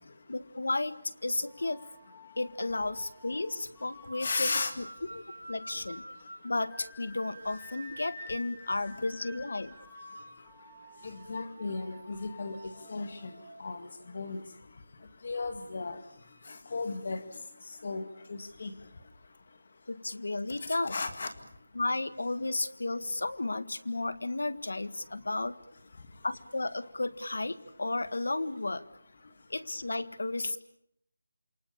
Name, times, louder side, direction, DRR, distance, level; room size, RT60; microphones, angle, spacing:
voice 1, 0.3-1.8 2.4-4.9 5.1-6.0 6.4-9.7 19.9-20.9 21.8-25.6 26.2-28.9 29.5-30.6, left 2 dB, 75° left, 13 dB, 1.7 m, -33 dB
sound 1, 1.5-14.3, equal, 5° left, 4.6 m, -50 dB
voice 2, 4.2-4.7 11.0-12.6 12.9-13.3 13.6-13.9 14.1-14.4 15.2-16.0 16.7-17.2 17.8-18.7 20.9-21.3, left 3 dB, 35° left, 8 dB, 2.2 m, -34 dB
28.0 x 23.5 x 7.1 m, 0.74 s
figure-of-eight pair, 180°, 0 cm